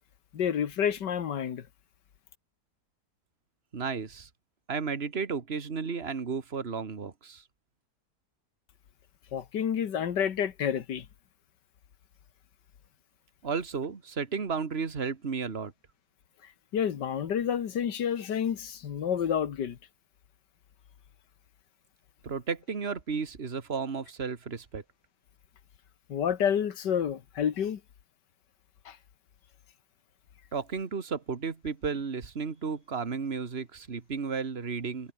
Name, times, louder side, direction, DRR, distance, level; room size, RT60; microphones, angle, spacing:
voice 1, 0.3-1.7 9.3-11.1 16.7-19.8 26.1-27.8 28.9-29.0, left 8 dB, 85° left, 2.0 m, -29 dB
voice 2, 3.7-4.3 4.7-7.4 13.4-15.7 22.2-24.8 30.5-35.1, right 5 dB, 35° right, 2.0 m, -33 dB
omnidirectional pair, 1.8 m